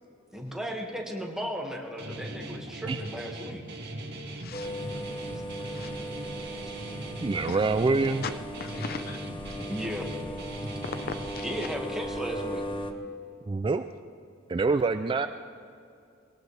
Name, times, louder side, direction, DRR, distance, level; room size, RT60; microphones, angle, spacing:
voice 1, 0.3-3.6 9.7-10.1 11.4-12.9, equal, 5° right, -1 dB, 1.8 m, -35 dB
Guitar, 2.0-11.7, right 1 dB, 55° right, 2.0 m, -39 dB
voice 2, 4.4-4.7 5.6-6.0 6.6-6.7 7.4-7.7 8.2-8.3 8.6-9.6 10.8-11.4, left 5 dB, 50° left, 10 dB, 0.6 m, -39 dB
sound 1, 4.5-12.9, equal, 25° left, 0.9 m, -38 dB
voice 3, 7.2-8.3 13.5-13.8 14.5-15.3, right 3 dB, 25° right, 10 dB, 0.3 m, -25 dB
21.5 x 18.0 x 3.3 m, 2.5 s
head